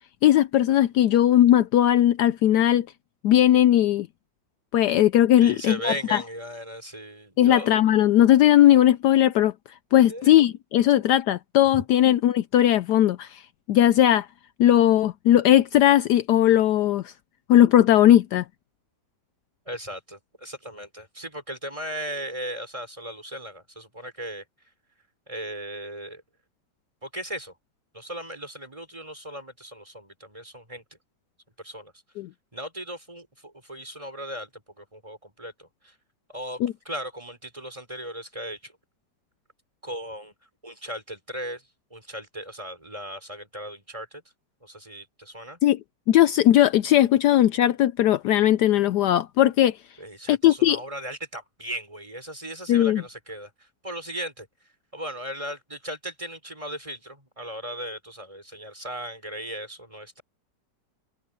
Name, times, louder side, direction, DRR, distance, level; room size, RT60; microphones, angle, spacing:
voice 1, 0.2-2.9 3.2-4.1 4.7-6.2 7.4-9.5 9.9-13.4 13.7-14.3 14.6-17.1 17.5-18.4 32.2-32.3 36.6-36.7 45.6-45.8 46.1-49.7 50.3-50.8 52.7-53.0, left 12 dB, 75° left, 1.1 m, -18 dB
voice 2, 5.4-7.8 10.1-10.4 11.7-11.8 19.6-24.4 25.3-26.2 27.0-27.5 27.9-30.8 31.6-31.9 32.5-35.9 36.3-36.6 36.8-38.7 39.8-40.3 40.6-44.2 44.6-45.6 50.0-54.5 54.9-60.2, equal, 15° right, 4.7 m, -37 dB
omnidirectional pair, 1.9 m